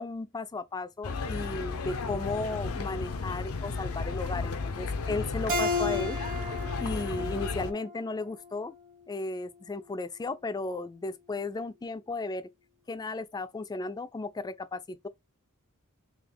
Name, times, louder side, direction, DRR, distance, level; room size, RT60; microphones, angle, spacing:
voice 1, 0.0-6.2 6.8-8.7 9.1-12.5 12.9-15.1, left 3 dB, 20° left, 0.3 m, -35 dB
sound 1, 1.0-7.7, left 4 dB, 90° left, 0.6 m, -34 dB
Keyboard (musical), 5.5-8.7, left 2 dB, 40° right, 1.2 m, -33 dB
3.9 x 2.8 x 3.3 m
head